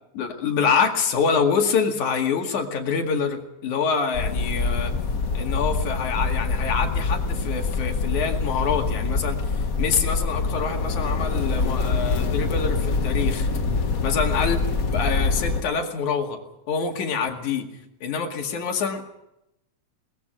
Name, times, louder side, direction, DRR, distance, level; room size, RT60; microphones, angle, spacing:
voice 1, 0.1-4.9 5.3-13.5 14.0-14.6 14.9-16.4 16.7-17.7 18.0-19.1, left 6 dB, 90° left, 3 dB, 3.5 m, -26 dB
sound 1, 4.1-15.6, left 4 dB, 50° left, 1.1 m, -25 dB
22.0 x 20.5 x 6.3 m, 0.85 s
omnidirectional pair, 3.3 m